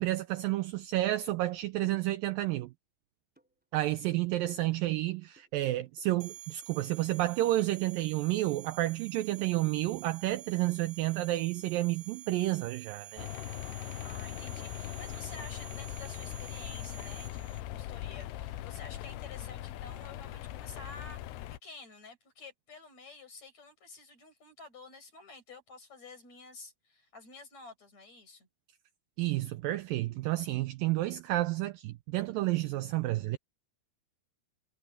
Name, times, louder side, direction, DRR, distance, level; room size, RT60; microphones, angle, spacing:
voice 1, 0.0-2.7 3.7-13.3 29.2-33.4, right 16 dB, 85° right, 2.0 m, -30 dB
sound 1, 3.4-3.5 3.7-12.9, right 1 dB, ahead, 3.3 m, -64 dB
sound 2, 6.2-17.6, right 12 dB, 60° right, 2.6 m, -49 dB
sound 3, 13.2-21.6, left 14 dB, 90° left, 2.9 m, -40 dB
voice 2, 14.0-28.5, left 3 dB, 40° left, 8.0 m, -50 dB
omnidirectional pair, 4.7 m